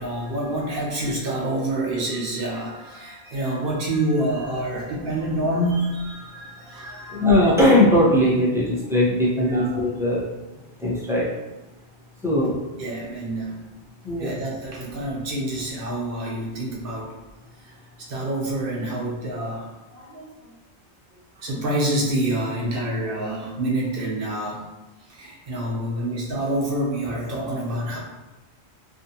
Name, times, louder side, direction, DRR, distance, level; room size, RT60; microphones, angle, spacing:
voice 1, 0.0-7.3 9.4-9.7 12.8-13.6 14.2-17.1 17.6-17.7 18.1-20.5 21.4-24.6 25.1-28.0, right 1 dB, 60° right, -2 dB, 0.7 m, -27 dB
voice 2, 7.1-10.3 10.8-11.3 12.2-12.6 14.0-14.4, left 1 dB, 5° right, -7 dB, 0.4 m, -19 dB
2.5 x 2.4 x 2.7 m, 1.1 s
omnidirectional pair, 1.1 m